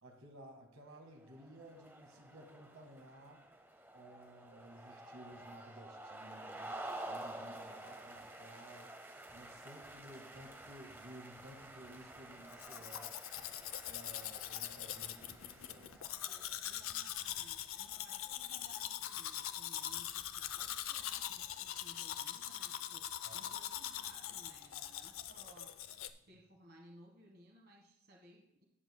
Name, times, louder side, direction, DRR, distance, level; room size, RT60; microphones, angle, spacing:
voice 1, 0.0-3.4 3.9-8.9 9.3-13.2 13.9-16.0 16.3-16.6 23.2-23.5, right 1 dB, 70° right, 2 dB, 1.7 m, -55 dB
sound 1, 1.2-16.8, right 1 dB, 10° right, 0.7 m, -50 dB
Domestic sounds home sounds, 12.5-26.1, left 11 dB, 75° left, 0.5 m, -42 dB
voice 2, 16.6-25.7 26.3-28.6, right 1 dB, 45° right, 0 dB, 1.4 m, -61 dB
18.0 x 7.2 x 2.2 m, 0.77 s
head